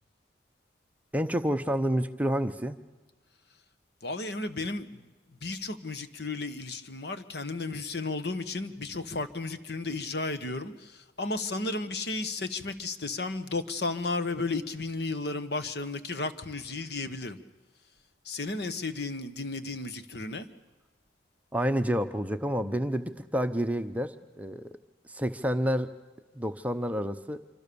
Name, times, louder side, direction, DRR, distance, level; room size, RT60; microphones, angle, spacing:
voice 1, 1.1-2.8 21.5-24.7 25.1-25.9 26.3-27.4, equal, 10° right, 8 dB, 0.8 m, -29 dB
voice 2, 4.0-5.0 5.4-17.4 18.2-20.5, left 3 dB, 60° left, 10 dB, 1.3 m, -33 dB
26.5 x 25.0 x 7.0 m, 1.2 s
head